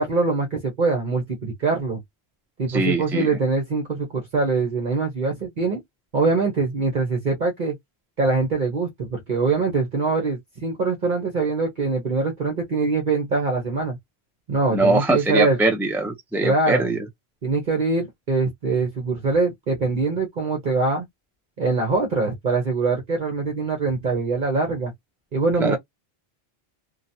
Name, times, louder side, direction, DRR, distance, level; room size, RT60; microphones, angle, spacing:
voice 1, 0.0-2.0 2.6-5.8 6.1-7.7 8.2-14.0 14.5-15.6 16.4-16.9 17.4-21.1 21.6-24.9 25.3-25.8, right 3 dB, 50° right, 1.0 m, -23 dB
voice 2, 2.7-3.3 14.7-17.1 25.6-25.8, right 2 dB, 5° right, 0.3 m, -22 dB
2.9 x 2.3 x 2.6 m
omnidirectional pair, 1.1 m